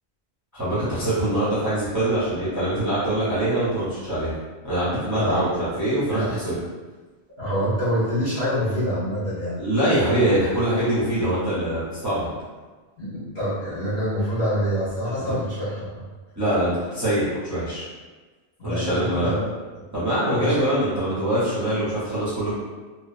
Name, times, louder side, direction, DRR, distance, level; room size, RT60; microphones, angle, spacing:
voice 1, 0.5-4.3 4.6-6.5 9.6-12.3 15.3-15.4 16.4-17.9 18.6-19.3 19.9-22.6, right 1 dB, 20° right, -13 dB, 0.7 m, -23 dB
voice 2, 7.4-9.6 13.0-16.0 18.6-19.5 19.8-19.9 20.4-20.7, equal, 50° left, -13 dB, 1.1 m, -26 dB
2.8 x 2.1 x 2.5 m, 1.3 s
omnidirectional pair, 1.1 m